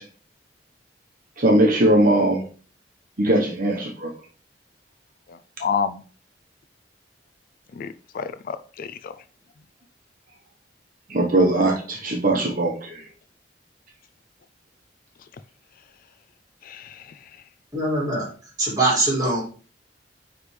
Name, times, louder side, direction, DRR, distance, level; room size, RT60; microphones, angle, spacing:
voice 1, 1.4-2.4 3.2-4.1 11.1-13.0, right 1 dB, 50° right, 1.1 m, -20 dB
voice 2, 5.3-6.0 7.7-9.1 16.6-17.2, left 6 dB, 50° left, 0.3 m, -30 dB
voice 3, 17.7-18.3 18.6-19.4, right 2 dB, 20° right, 2.5 m, -22 dB
9.6 x 3.4 x 3.2 m
head